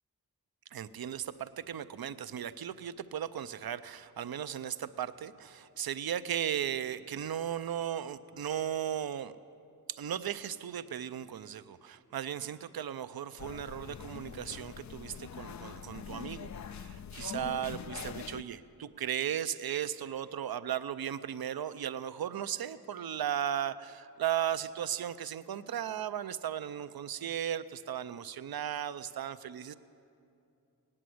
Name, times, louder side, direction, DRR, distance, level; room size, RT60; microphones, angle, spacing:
voice 1, 0.7-9.3 9.9-29.7, right 10 dB, 75° right, 13 dB, 0.6 m, -36 dB
sound 1, 13.4-18.4, left 7 dB, 50° left, 0.4 m, -44 dB
17.5 x 9.8 x 7.7 m, 2.6 s
cardioid pair, 55°, 37 cm